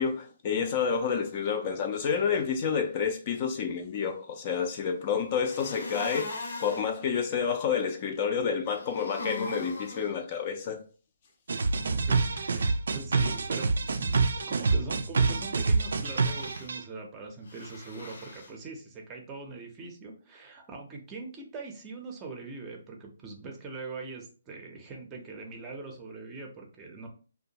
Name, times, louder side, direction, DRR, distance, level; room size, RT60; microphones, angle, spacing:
voice 1, 0.0-6.3 6.6-10.8, left 6 dB, 35° left, 0.4 m, -29 dB
sound 1, 5.5-6.9 8.7-10.1 15.9-16.7 17.5-18.5, left 2 dB, 80° left, 0.9 m, -40 dB
sound 2, 11.5-16.8, right 4 dB, 75° right, 0.3 m, -27 dB
voice 2, 11.9-27.1, right 3 dB, 20° right, 0.6 m, -42 dB
2.5 x 2.2 x 2.8 m
hypercardioid pair, 150°, 0 cm